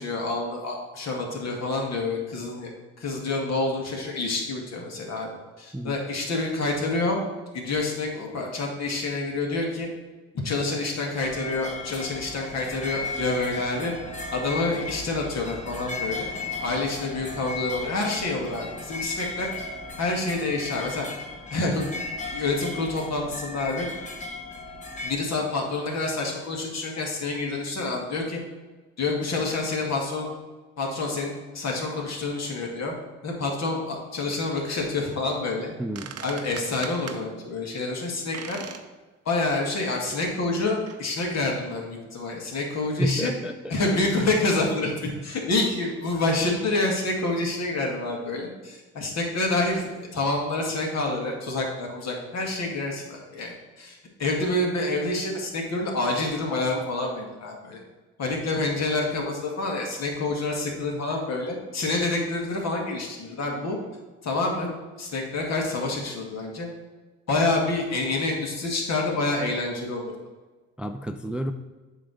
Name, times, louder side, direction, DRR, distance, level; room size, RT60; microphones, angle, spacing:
voice 1, 0.0-2.7 3.0-5.3 5.6-7.2 7.5-9.9 10.4-13.9 14.3-16.3 16.6-19.5 20.0-21.1 21.5-22.0 22.3-23.9 25.0-28.4 29.0-30.3 30.8-32.9 33.2-35.7 36.2-38.6 39.3-43.3 43.7-57.8 58.2-63.8 64.2-66.7 67.3-70.1, left 2 dB, 60° left, 0 dB, 1.9 m, -28 dB
sound 1, 11.2-25.1, left 3 dB, 25° left, 1.0 m, -36 dB
sound 2, 35.6-35.7 36.0-37.2 38.3-38.9 39.3-39.4 40.0-40.1 40.9-41.0, right 7 dB, 55° right, 0.7 m, -40 dB
voice 2, 35.8-36.1 43.0-43.7 70.8-71.5, equal, 5° right, 7 dB, 0.3 m, -29 dB
7.8 x 3.2 x 6.3 m, 1.3 s
cardioid pair, 90°, 30 cm